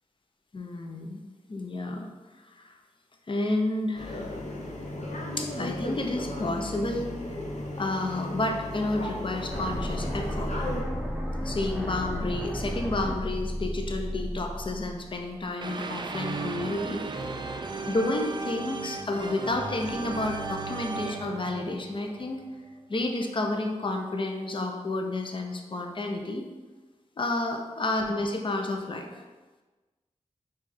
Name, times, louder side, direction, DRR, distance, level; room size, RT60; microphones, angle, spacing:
voice 1, 0.5-1.2 1.5-2.1 2.5-2.7 3.3-4.2 5.4-7.1 7.8-10.5 11.4-17.0 17.9-22.4 22.9-26.4 27.2-29.2, left 2 dB, 40° left, 3 dB, 0.6 m, -30 dB
sound 1, 3.9-10.8, left 1 dB, 70° left, 0.8 m, -35 dB
sound 2, 9.5-15.5, equal, 5° right, 0.8 m, -33 dB
sound 3, 15.6-22.6, right 4 dB, 40° right, 0.4 m, -36 dB
4.6 x 2.4 x 4.2 m, 1.3 s
cardioid pair, 55°, 13 cm